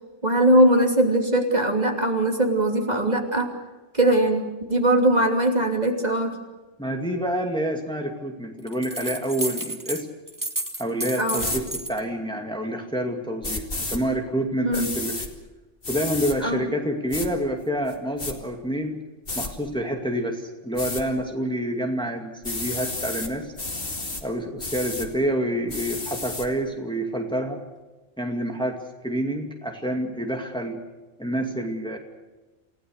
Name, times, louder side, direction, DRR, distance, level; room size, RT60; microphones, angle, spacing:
voice 1, 0.2-3.5 3.9-6.4 11.2-11.4 14.6-14.9 16.4-16.6, right 1 dB, 35° right, 2 dB, 3.0 m, -20 dB
voice 2, 6.8-10.1 10.8-15.3 15.9-19.0 19.4-23.5 24.2-27.6 28.2-28.8 29.0-30.8 31.2-32.0, equal, 5° left, 2 dB, 2.3 m, -28 dB
sound 1, 8.7-10.0 10.3-12.0, right 1 dB, 15° right, 1.8 m, -31 dB
sound 2, 11.4-11.6 13.4-14.0 14.7-15.3 15.8-16.4 17.1-17.3 17.9-18.3 19.3-19.5 20.8-21.0 22.4-23.3 23.6-24.2 24.6-25.1 25.7-26.5, left 2 dB, 45° left, 2.7 m, -31 dB
29.0 x 17.0 x 6.6 m, 1.2 s
omnidirectional pair, 1.3 m